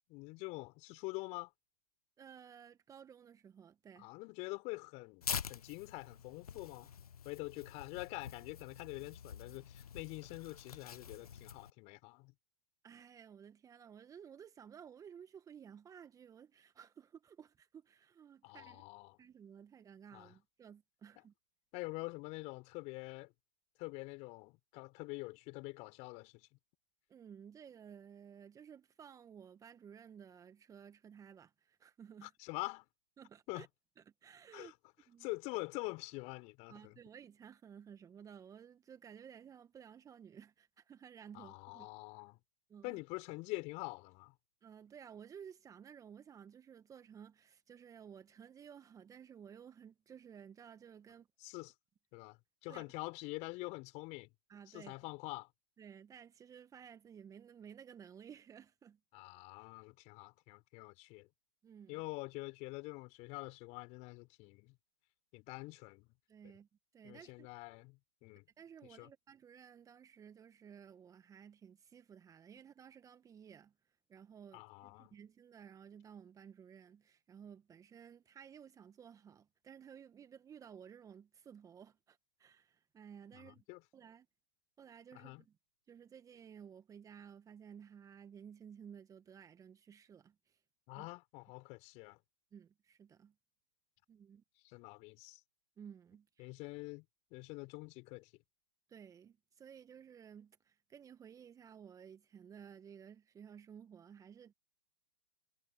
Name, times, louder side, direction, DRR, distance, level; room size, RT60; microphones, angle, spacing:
voice 1, 0.1-1.5 4.0-6.9 7.2-12.3 18.4-19.2 20.1-20.3 21.7-23.3 23.8-26.5 32.2-32.9 33.5-33.7 34.5-34.7 35.2-37.0 41.3-42.4 42.8-44.3 51.4-51.7 52.1-54.3 54.7-55.5 59.1-61.3 61.9-64.8 65.3-66.1 67.0-68.4 69.0-69.1 74.5-75.1 83.3-83.8 85.1-85.4 90.9-92.2 94.6-95.4 96.4-97.0 97.3-98.3, left 25 dB, 40° left, 4.7 m, -46 dB
voice 2, 2.2-4.1 12.8-18.8 19.2-21.3 27.1-32.3 33.2-33.7 34.0-34.7 35.1-35.3 36.7-41.9 42.7-43.0 44.6-51.3 52.7-52.8 54.5-54.9 55.8-59.0 61.6-62.0 66.3-66.7 66.9-67.5 68.6-73.7 74.1-83.6 83.9-84.3 84.8-85.6 85.9-90.6 90.9-91.1 92.5-93.3 94.1-94.4 95.8-96.5 98.9-104.5, right 8 dB, 20° right, 1.8 m, -55 dB
Tearing, 5.2-11.7, left 7 dB, 85° left, 0.5 m, -46 dB
hypercardioid pair, 115°, 19 cm